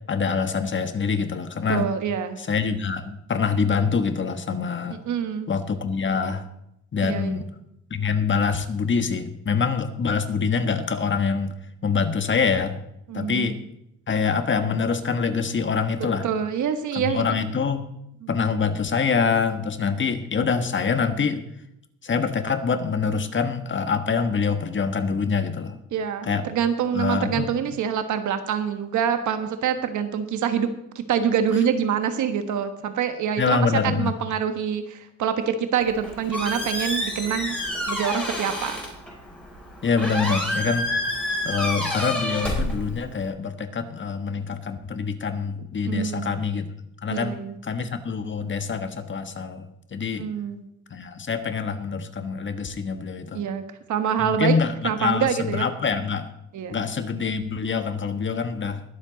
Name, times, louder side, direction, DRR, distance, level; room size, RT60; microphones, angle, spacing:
voice 1, 0.1-1.9 2.4-5.0 5.5-6.5 6.9-7.5 7.9-11.5 11.8-12.8 13.1-13.6 14.1-16.3 16.9-17.8 18.3-21.4 22.0-25.8 26.2-26.4 26.9-27.5 33.4-34.1 39.8-40.9 41.4-46.7 47.0-47.4 47.6-49.7 49.9-50.3 50.9-53.4 54.2-56.3 56.7-58.8, left 5 dB, 40° left, 8 dB, 1.4 m, -25 dB
voice 2, 1.7-2.4 4.9-5.5 7.0-7.4 13.1-13.6 16.2-17.4 18.2-18.3 25.9-37.6 37.9-38.8 45.8-46.3 47.1-47.6 50.1-50.6 53.3-53.6 53.9-54.5 54.8-55.7 56.5-56.8, right 8 dB, 75° right, 9 dB, 1.4 m, -26 dB
Squeak, 35.8-43.3, left 1 dB, 5° left, 4.8 m, -29 dB
21.5 x 7.5 x 4.0 m, 0.80 s
cardioid pair, 90°, 30 cm